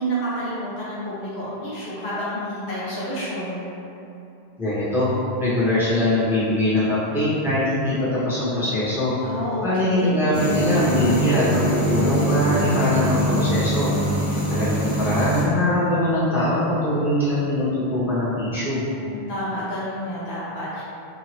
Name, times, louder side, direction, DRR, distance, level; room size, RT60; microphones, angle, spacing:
voice 1, 0.0-3.7 9.2-10.1 18.9-20.8, equal, 85° left, -10 dB, 1.2 m, -29 dB
voice 2, 4.6-5.1 5.4-9.1 9.6-13.9 14.5-18.8, left 1 dB, 5° right, -12 dB, 0.7 m, -22 dB
sound 1, 10.3-15.4, right 1 dB, 60° left, 1.5 m, -23 dB
2.8 x 2.7 x 2.9 m, 2.8 s
omnidirectional pair, 1.1 m